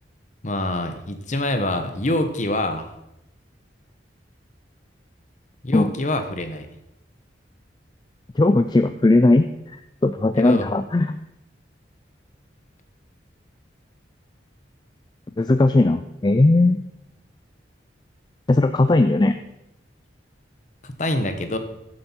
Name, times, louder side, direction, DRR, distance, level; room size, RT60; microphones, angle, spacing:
voice 1, 0.4-2.9 5.6-6.7 10.4-10.7 20.8-21.6, left 1 dB, 40° left, 7 dB, 1.1 m, -25 dB
voice 2, 8.4-9.8 10.0-11.2 15.4-16.8 18.5-19.4, left 2 dB, 25° left, 10 dB, 0.3 m, -18 dB
14.5 x 7.7 x 4.5 m, 0.86 s
head